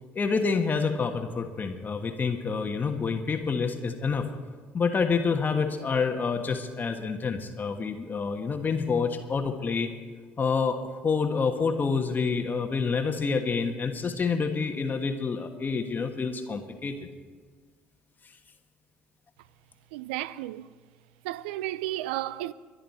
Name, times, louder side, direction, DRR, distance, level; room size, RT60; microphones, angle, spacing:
voice 1, 0.1-4.3 4.7-9.9 10.4-17.1, left 5 dB, 35° left, 1.3 m, -28 dB
voice 2, 19.9-20.7 21.2-22.5, right 15 dB, 80° right, 0.4 m, -33 dB
24.0 x 10.5 x 4.2 m
hypercardioid pair, 60°, 5 cm